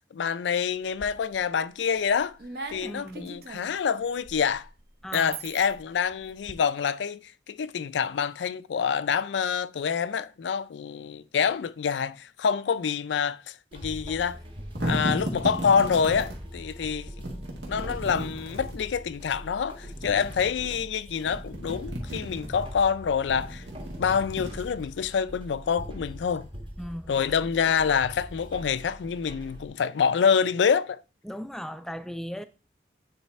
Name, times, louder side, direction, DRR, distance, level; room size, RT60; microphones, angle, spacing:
voice 1, 0.1-2.4 2.7-4.7 5.1-14.4 14.8-17.1 17.7-23.6 24.0-26.5 27.1-31.0, left 6 dB, 80° left, 0.4 m, -26 dB
sound 1, 0.8-1.5 1.9-6.5, right 4 dB, 60° right, 0.8 m, -42 dB
voice 2, 2.9-3.4 5.0-5.4 26.8-27.1 31.2-32.5, equal, ahead, 0.3 m, -37 dB
sound 2, 13.7-29.7, equal, 30° right, 1.1 m, -42 dB
sound 3, 14.4-16.4 17.2-18.8 19.7-20.8 21.1-22.7 23.2-25.0, right 1 dB, 85° right, 2.0 m, -35 dB
9.5 x 3.3 x 4.3 m
head